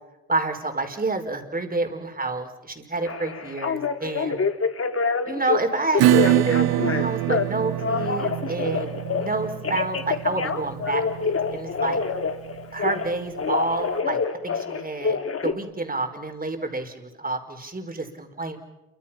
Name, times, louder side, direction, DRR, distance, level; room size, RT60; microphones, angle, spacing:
voice 1, 0.3-4.4 5.2-12.0 12.7-15.2 15.4-18.6, right 2 dB, 25° right, 5 dB, 4.8 m, -29 dB
Telephone, 3.1-5.6 5.9-7.5 7.8-9.3 9.6-13.1 13.4-15.5, left 5 dB, 40° left, 2.1 m, -26 dB
Acoustic guitar / Strum, 6.0-13.2, right 14 dB, 80° right, 0.9 m, -25 dB
28.5 x 25.0 x 5.9 m, 1.0 s
supercardioid pair, 60°, 36 cm